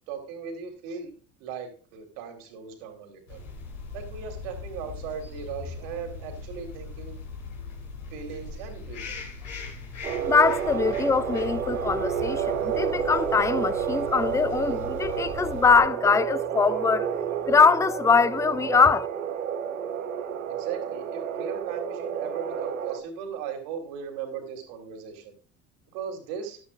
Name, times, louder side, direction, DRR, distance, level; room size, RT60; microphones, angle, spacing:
voice 1, 0.1-1.1 1.4-3.4 3.9-7.2 8.1-9.2 20.5-25.3 25.9-26.6, right 7 dB, 60° right, 3.4 m, -37 dB
sound 1, 3.3-15.8, left 4 dB, 75° left, 3.9 m, -40 dB
sound 2, 10.0-23.0, right 8 dB, 80° right, 1.0 m, -30 dB
voice 2, 10.3-17.1 17.5-19.1, left 5 dB, 10° left, 0.5 m, -22 dB
13.5 x 12.5 x 2.5 m
figure-of-eight pair, 60°, 40 cm